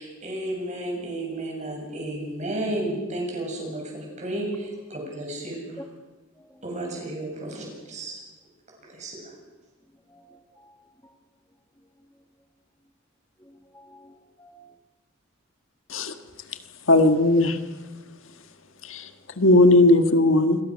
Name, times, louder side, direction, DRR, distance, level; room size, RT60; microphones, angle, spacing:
voice 1, 0.0-5.8 6.6-8.2 8.8-9.3, right 1 dB, 35° right, 0 dB, 7.6 m, -32 dB
voice 2, 10.1-10.8 11.0-11.1 13.4-14.6, left 1 dB, 10° left, 3 dB, 1.4 m, -49 dB
voice 3, 16.9-17.6 18.9-19.1 19.4-20.6, left 2 dB, 65° left, 8 dB, 1.6 m, -17 dB
28.0 x 22.0 x 6.4 m, 1.2 s
head